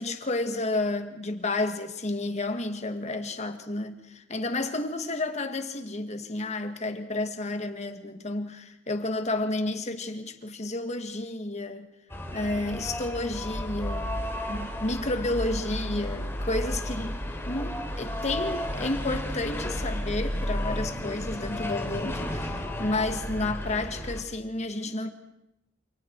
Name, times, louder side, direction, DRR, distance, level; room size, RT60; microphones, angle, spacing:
voice 1, 0.0-11.9 12.3-14.2 14.5-17.2 17.4-25.1, left 2 dB, 35° left, 1.8 m, -31 dB
sound 1, 12.1-24.2, left 1 dB, 15° left, 3.1 m, -33 dB
28.5 x 28.5 x 4.7 m
head